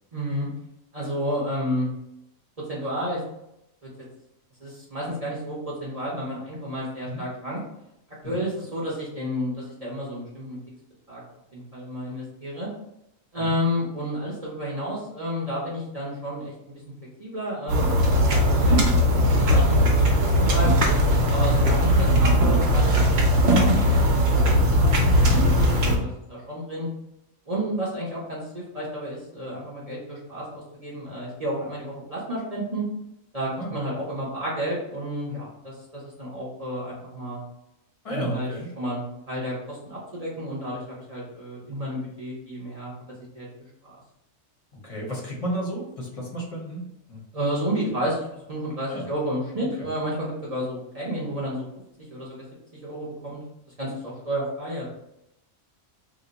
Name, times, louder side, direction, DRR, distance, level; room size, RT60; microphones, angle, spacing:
voice 1, 0.1-0.5 0.9-1.9 2.7-3.2 4.6-7.6 8.2-10.6 11.1-11.2 11.5-12.7 13.3-16.8 17.2-19.0 19.3-20.0 20.3-20.8 21.3-24.4 24.7-26.9 27.5-32.8 33.3-37.4 38.1-38.5 38.8-40.8 41.1-42.9 43.3-43.5 43.8-44.0 47.3-51.7 52.1-52.4 52.8-53.4 53.8-54.9, equal, 35° right, -6 dB, 0.7 m, -31 dB
sound 1, 17.7-26.0, equal, 60° right, 0.8 m, -19 dB
voice 2, 38.0-38.7 44.8-47.2 48.9-49.1 49.8-49.9, equal, 30° left, -3 dB, 0.8 m, -33 dB
2.8 x 2.1 x 3.8 m, 0.83 s
omnidirectional pair, 1.4 m